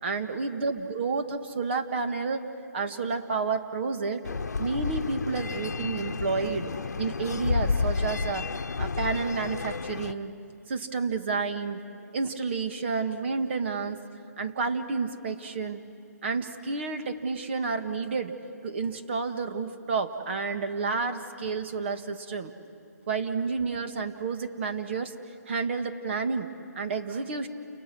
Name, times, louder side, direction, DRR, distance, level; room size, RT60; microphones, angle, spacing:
voice 1, 0.0-2.4 2.7-4.2 4.6-6.7 7.0-8.5 8.8-10.3 10.7-11.8 12.1-14.0 14.4-15.8 16.2-18.4 18.6-22.5 23.1-25.1 25.5-26.5 26.8-27.5, right 4 dB, 40° right, 7 dB, 1.9 m, -30 dB
sound 1, 4.2-10.1, left 4 dB, 75° left, 1.1 m, -31 dB
30.0 x 29.5 x 6.2 m, 2.5 s
hypercardioid pair, 155°, 9 cm